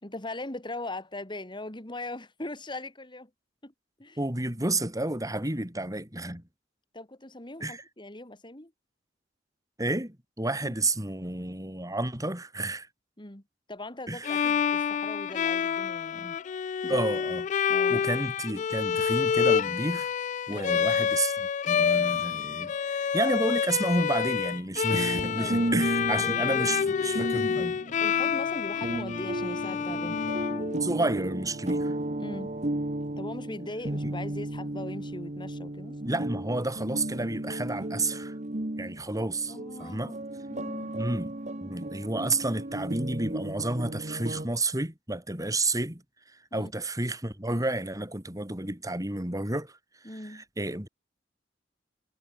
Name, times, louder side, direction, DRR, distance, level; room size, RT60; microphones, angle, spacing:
voice 1, 0.0-3.3 3.6-3.7 4.0-4.2 6.9-8.7 10.6-10.7 13.2-13.4 13.7-16.4 16.8-17.0 17.7-18.0 20.5-20.8 25.4-25.6 26.1-26.7 28.0-30.2 32.2-32.5 33.2-36.0 39.5-40.2 40.5-40.9 46.5-46.7 50.0-50.4, left 2 dB, 25° left, 3.4 m, -40 dB
voice 2, 4.2-6.4 7.6-7.8 9.8-12.9 14.1-14.5 16.9-17.4 17.9-20.1 20.5-27.8 30.8-31.9 34.0-34.1 36.0-38.3 38.8-40.1 40.9-46.0 46.5-49.8 50.0-50.9, right 2 dB, 20° right, 4.7 m, -31 dB
Bowed string instrument, 14.2-31.2, left 7 dB, 40° left, 0.3 m, -28 dB
sound 1, 24.9-44.5, right 1 dB, 40° right, 1.6 m, -34 dB
head